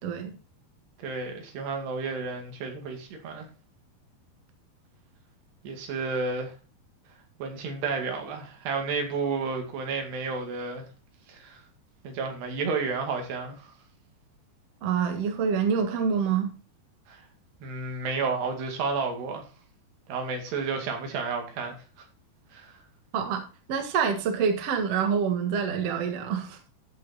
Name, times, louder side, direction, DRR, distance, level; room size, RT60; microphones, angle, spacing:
voice 1, 0.0-0.3 14.8-16.5 23.1-23.4 23.7-26.6, right 6 dB, 50° right, 5 dB, 2.2 m, -26 dB
voice 2, 1.0-3.5 5.6-6.5 7.4-10.9 11.3-11.6 12.0-13.7 17.1-17.2 17.6-19.4 20.1-22.1 22.5-22.7, right 4 dB, 85° right, 3 dB, 4.3 m, -31 dB
13.5 x 6.1 x 4.2 m, 0.34 s
omnidirectional pair, 4.6 m